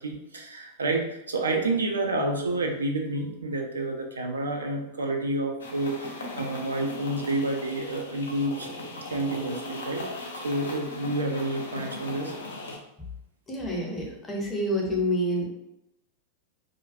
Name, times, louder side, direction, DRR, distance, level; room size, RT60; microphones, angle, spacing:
voice 1, 0.0-8.7 9.1-12.4, right 2 dB, 75° right, 2 dB, 0.3 m, -29 dB
sound 1, 5.6-12.8, left 2 dB, 70° left, 0.4 m, -38 dB
voice 2, 13.5-15.5, equal, 15° left, -2 dB, 0.6 m, -28 dB
2.4 x 2.2 x 2.5 m, 0.86 s
figure-of-eight pair, 90°, 0 cm